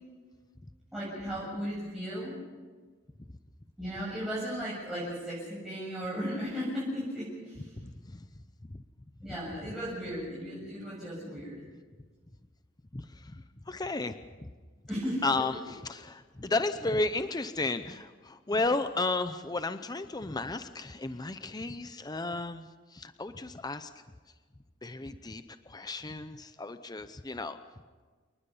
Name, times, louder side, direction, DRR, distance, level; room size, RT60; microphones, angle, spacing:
voice 1, 0.9-2.4 3.8-7.7 9.2-11.6 14.9-15.2, equal, ahead, -10 dB, 7.5 m, -36 dB
voice 2, 7.8-8.3 8.7-8.8 12.9-14.2 14.4-14.5 15.2-23.9 24.8-27.6, left 3 dB, 20° left, 10 dB, 0.7 m, -33 dB
28.5 x 20.0 x 5.6 m, 1.4 s
head